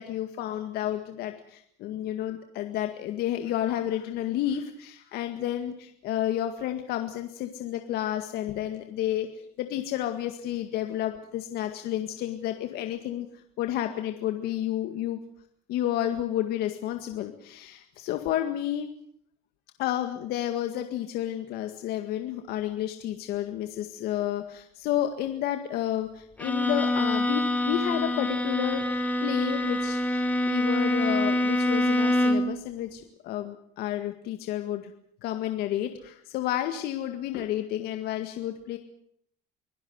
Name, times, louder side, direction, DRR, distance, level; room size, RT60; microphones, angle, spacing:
voice 1, 0.0-9.3 9.6-13.3 13.6-15.2 15.7-18.9 19.8-34.9 35.2-38.8, left 12 dB, 60° left, 6 dB, 1.9 m, -31 dB
Bowed string instrument, 26.4-32.6, left 1 dB, 10° left, 2.6 m, -25 dB
24.5 x 17.0 x 8.1 m, 0.66 s
cardioid pair, 135°, 18 cm